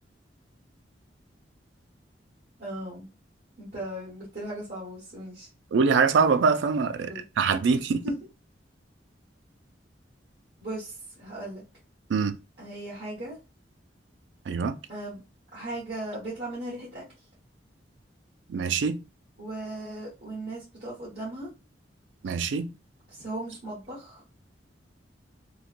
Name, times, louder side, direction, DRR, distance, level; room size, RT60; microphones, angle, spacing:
voice 1, 2.6-3.1 3.6-5.5 6.9-7.2 8.0-8.2 10.6-11.6 12.6-13.4 14.9-15.2 15.5-17.0 19.4-21.5 23.1-24.2, right 1 dB, 55° right, 1.3 m, -37 dB
voice 2, 5.7-8.0 12.1-12.3 14.5-14.8 18.5-19.0 22.2-22.7, right 5 dB, 75° right, 0.3 m, -24 dB
3.1 x 2.1 x 2.5 m
head